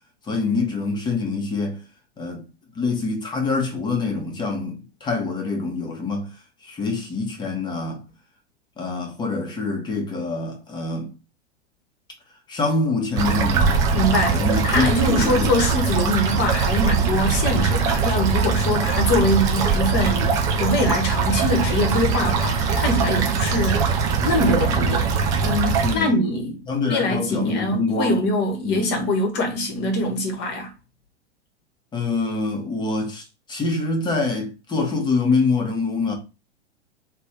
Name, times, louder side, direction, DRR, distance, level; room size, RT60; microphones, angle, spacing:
voice 1, 0.2-1.8 2.2-2.4 2.7-6.3 6.6-8.1 8.8-11.1 12.5-13.9 14.3-15.5 25.8-26.3 26.7-28.2 28.6-28.9 31.9-36.1, left 3 dB, 10° left, 1.3 m, -25 dB
sound 1, 13.2-25.9, right 5 dB, 10° right, 0.3 m, -21 dB
voice 2, 13.9-25.1 25.4-30.7, left 1 dB, 30° left, 1.4 m, -23 dB
3.5 x 3.1 x 4.6 m
figure-of-eight pair, 100°, 35 cm